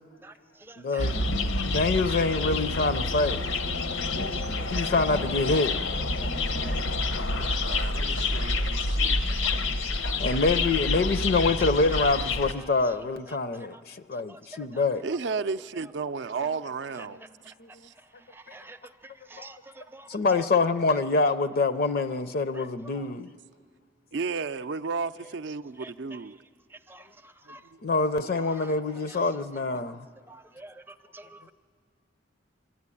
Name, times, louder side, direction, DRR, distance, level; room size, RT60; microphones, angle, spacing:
voice 1, 0.2-1.1 4.3-4.9 6.2-6.9 9.9-10.2 14.3-14.8 15.8-15.9 16.9-17.1 17.4-17.5 17.9-20.1 22.5-22.7 25.8-26.2 26.7-27.6 30.3-31.5, right 2 dB, 10° right, 0.5 m, -49 dB
voice 2, 0.8-1.2 1.6-3.4 4.7-5.7 7.4-7.5 8.0-9.2 10.0-15.0 16.4-16.5 17.1-17.3 17.6-17.7 19.4-19.5 20.1-23.3 27.8-30.0, left 3 dB, 50° left, 0.5 m, -26 dB
sound 1, 1.0-12.5, left 2 dB, 90° left, 0.9 m, -28 dB
voice 3, 7.6-9.2 15.0-17.2 17.8-17.9 24.1-26.4 27.5-27.8, right 4 dB, 65° right, 0.5 m, -33 dB
24.0 x 13.5 x 9.8 m
head